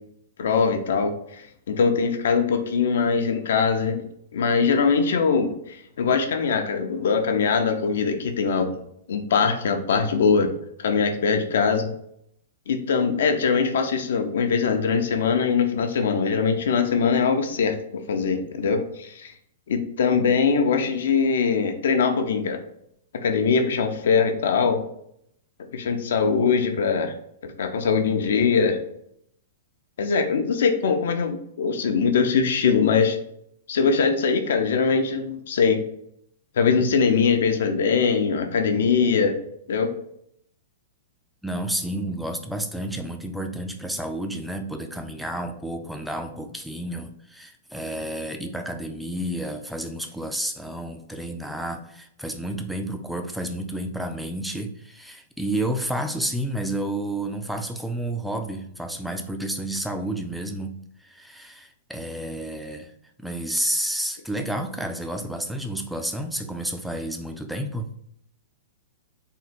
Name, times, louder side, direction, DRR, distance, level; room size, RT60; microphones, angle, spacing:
voice 1, 0.4-4.0 4.3-8.7 9.1-10.5 10.8-11.9 12.7-19.3 19.7-22.6 23.2-24.8 25.7-27.1 27.6-28.8 30.0-33.2 33.7-35.8 36.6-39.4 39.7-39.9, left 5 dB, 75° left, 6 dB, 0.6 m, -22 dB
voice 2, 41.4-62.9 63.2-67.9, right 1 dB, ahead, 5 dB, 0.3 m, -30 dB
3.7 x 2.2 x 4.2 m, 0.73 s
hypercardioid pair, 155°, 0 cm